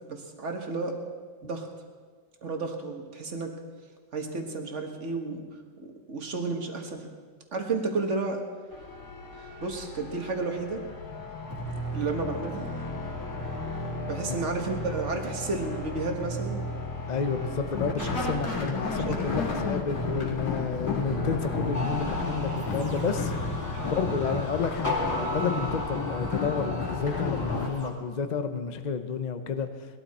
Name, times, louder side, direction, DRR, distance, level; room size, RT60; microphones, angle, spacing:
voice 1, 0.1-1.0 1.4-1.7 2.4-3.5 4.1-5.4 5.8-7.1 7.5-8.4 9.3-10.8 11.9-12.7 14.1-16.7 18.0-18.2 19.0-19.4 23.7-23.9, right 3 dB, 40° right, 3 dB, 1.6 m, -32 dB
sound 1, 8.7-27.7, left 3 dB, 50° left, 2.6 m, -33 dB
voice 2, 17.1-23.3 23.9-29.7, left 5 dB, 75° left, 8 dB, 0.4 m, -30 dB
sound 2, 21.7-27.9, left 1 dB, 10° left, 2.5 m, -35 dB
20.5 x 12.5 x 4.3 m, 1.5 s
omnidirectional pair, 2.1 m